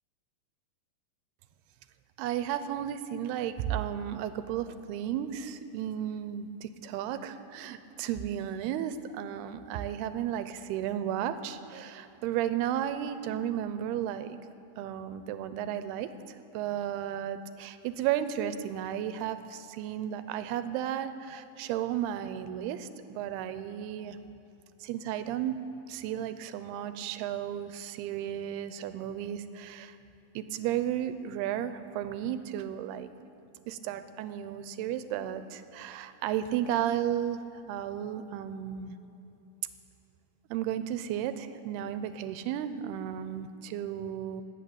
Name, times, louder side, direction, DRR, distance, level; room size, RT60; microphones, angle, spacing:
voice 1, 2.2-14.4 14.8-24.2 24.8-30.0 30.4-33.1 33.7-39.0 40.5-44.4, right 10 dB, 85° right, 11 dB, 2.7 m, -34 dB
19.5 x 8.7 x 8.6 m, 2.9 s
omnidirectional pair, 4.6 m